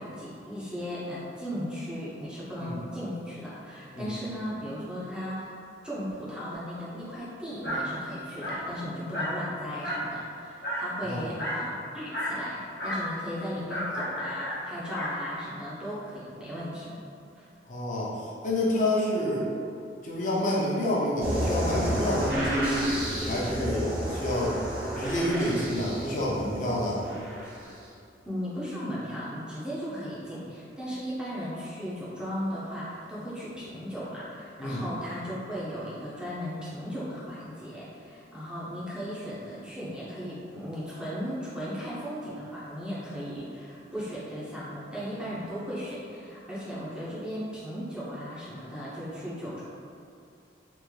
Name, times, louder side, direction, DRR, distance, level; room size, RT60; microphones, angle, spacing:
voice 1, 0.0-5.5 5.8-17.1 17.3-17.5 28.3-49.6, equal, 5° right, -9 dB, 0.5 m, -36 dB
Dog, 7.6-7.9 8.4-8.7 9.1-9.4 9.8-10.1 10.6-10.9 11.4-11.7 12.1-12.4 12.8-13.1 13.7-15.2, equal, 75° left, 0.9 m, -32 dB
voice 2, 17.7-19.4 20.0-23.0 23.3-24.6 25.0-27.0 34.6-34.8, left 1 dB, 45° left, -6 dB, 0.6 m, -28 dB
sound 1, 21.2-27.8, equal, 55° right, 1.0 m, -31 dB
3.5 x 2.4 x 3.2 m, 2.5 s
head